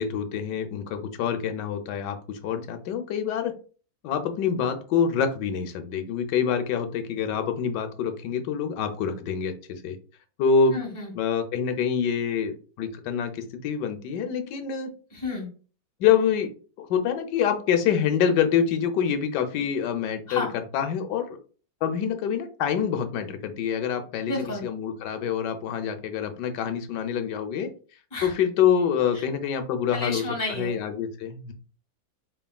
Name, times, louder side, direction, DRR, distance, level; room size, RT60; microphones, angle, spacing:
voice 1, 0.0-3.5 4.0-10.0 10.4-10.8 11.1-14.9 16.0-16.5 16.8-21.4 21.8-24.3 24.6-27.7 28.2-31.5, left 7 dB, 75° left, 7 dB, 1.2 m, -26 dB
voice 2, 10.7-11.1 15.1-15.5 20.3-20.5 24.3-24.6 28.1-28.3 29.1-29.3 29.9-30.8, left 3 dB, 10° left, -4 dB, 1.1 m, -31 dB
4.1 x 3.4 x 2.2 m, 0.39 s
omnidirectional pair, 1.9 m